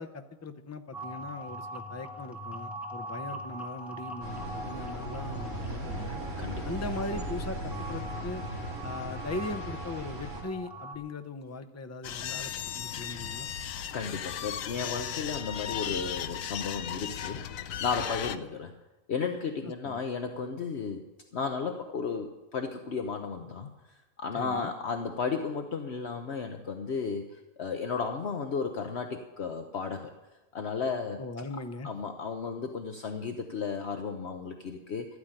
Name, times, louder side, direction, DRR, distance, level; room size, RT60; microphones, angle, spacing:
voice 1, 0.0-6.2 6.7-8.4 8.8-13.5 19.8-20.0 24.3-24.7 31.2-31.9, left 2 dB, 25° left, 9 dB, 0.4 m, -39 dB
sound 1, 0.9-10.9, equal, ahead, 1.2 m, -42 dB
sound 2, 4.2-10.4, right 1 dB, 65° right, 4.0 m, -37 dB
sound 3, 12.0-18.4, left 9 dB, 80° left, 1.1 m, -36 dB
voice 2, 13.9-17.4 17.8-18.7 19.1-21.0 21.3-23.7 24.2-30.1 30.5-31.2 31.8-35.1, left 5 dB, 55° left, 5 dB, 1.1 m, -34 dB
13.0 x 9.7 x 8.9 m, 1.1 s
omnidirectional pair, 1.4 m